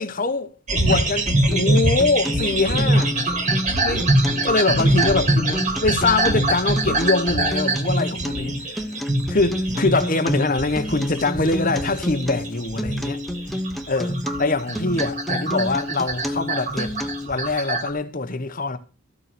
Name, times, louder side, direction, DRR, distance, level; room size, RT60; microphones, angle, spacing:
voice 1, 0.0-3.1 3.8-4.1 4.4-8.8 9.3-13.2 13.9-16.9 17.2-18.8, left 3 dB, 40° left, 1.2 m, -23 dB
sound 1, 0.7-17.9, right 1 dB, 35° right, 2.5 m, -24 dB
Acoustic guitar, 1.3-17.3, left 1 dB, ahead, 0.8 m, -30 dB
14.0 x 7.0 x 6.1 m
head